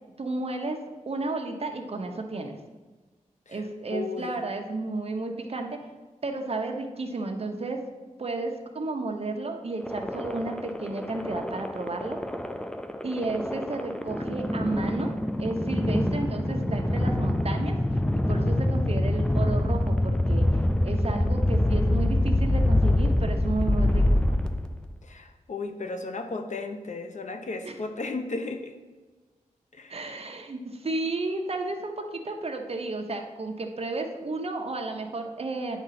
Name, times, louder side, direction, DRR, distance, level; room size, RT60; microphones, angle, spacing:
voice 1, 0.2-0.8 1.1-2.6 3.5-5.8 6.2-7.8 8.2-12.2 13.0-15.1 15.4-17.8 18.3-20.4 20.8-24.3 27.6-27.7 29.9-35.8, right 2 dB, 50° right, 3 dB, 1.0 m, -32 dB
voice 2, 3.9-4.4 25.0-28.7 29.7-30.0, left 3 dB, 65° left, 6 dB, 0.9 m, -35 dB
sound 1, 9.8-24.9, left 1 dB, 5° left, 0.4 m, -25 dB
9.6 x 3.8 x 5.9 m, 1.3 s
wide cardioid pair, 95°, 13 cm